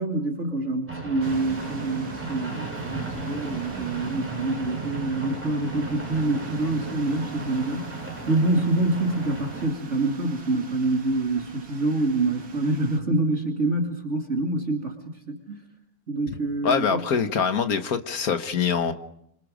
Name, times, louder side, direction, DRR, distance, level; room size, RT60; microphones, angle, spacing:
voice 1, 0.0-15.0 15.3-15.6 16.1-17.0, right 2 dB, 50° right, 2 dB, 2.8 m, -26 dB
sound 1, 0.9-9.7, right 3 dB, 10° right, 5.2 m, -36 dB
sound 2, 1.2-13.0, right 4 dB, 85° right, 2.6 m, -41 dB
voice 2, 16.6-18.9, left 6 dB, 75° left, 8 dB, 1.8 m, -24 dB
29.0 x 26.5 x 5.1 m, 0.75 s
omnidirectional pair, 1.6 m